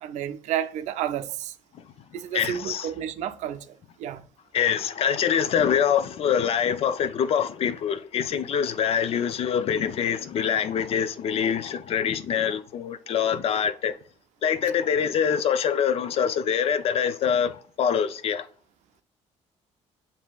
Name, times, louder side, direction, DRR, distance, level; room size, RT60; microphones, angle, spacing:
voice 1, 0.0-1.6 2.1-4.3, right 10 dB, 85° right, 0.5 m, -31 dB
voice 2, 2.3-2.9 4.5-13.9 14.4-17.5 17.8-18.4, left 8 dB, 55° left, 0.5 m, -24 dB
7.3 x 2.7 x 2.3 m
cardioid pair, 115°, 12 cm